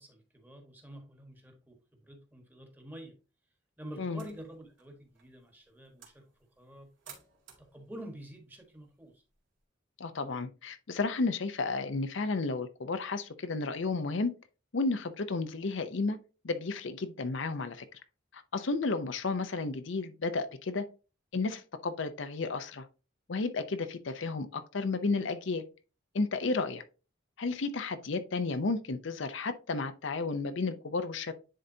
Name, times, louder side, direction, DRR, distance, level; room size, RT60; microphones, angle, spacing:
voice 1, 0.0-3.2 3.8-6.2 6.6-6.9 7.6-9.2, right 1 dB, 10° right, 1.3 m, -48 dB
sound 1, 4.1-9.6, right 7 dB, 65° right, 2.4 m, -58 dB
voice 2, 10.0-14.3 14.7-16.2 16.4-18.0 18.3-20.8 21.3-22.9 23.3-25.6 26.1-26.8 27.4-31.3, left 3 dB, 65° left, 0.6 m, -32 dB
10.0 x 4.0 x 2.7 m
head